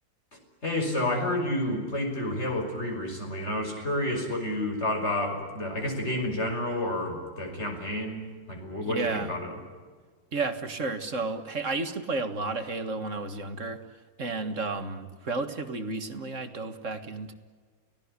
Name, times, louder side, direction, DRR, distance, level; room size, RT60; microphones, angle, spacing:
voice 1, 0.6-9.5, left 1 dB, 35° left, 3 dB, 5.9 m, -30 dB
voice 2, 8.8-9.3 10.3-13.8 14.2-17.3, right 3 dB, 40° right, 8 dB, 1.9 m, -32 dB
30.0 x 18.0 x 9.8 m, 1.5 s
omnidirectional pair, 2.0 m